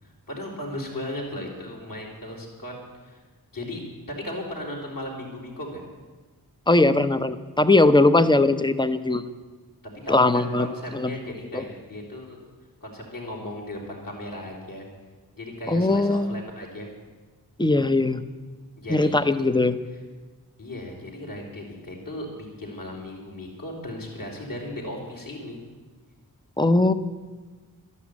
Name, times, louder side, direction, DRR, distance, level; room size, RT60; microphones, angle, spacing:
voice 1, 0.0-3.2 3.5-5.8 9.8-12.4 12.8-14.9 15.4-16.9 18.8-19.1 20.6-25.6, left 1 dB, 60° left, -2 dB, 4.6 m, -36 dB
voice 2, 6.7-9.3 10.1-10.7 10.9-11.2 11.5-11.6 15.7-16.3 17.6-18.2 18.9-19.8 26.6-26.9, left 2 dB, 10° left, 12 dB, 0.8 m, -20 dB
12.5 x 11.0 x 8.6 m, 1.3 s
wide cardioid pair, 65°, 38 cm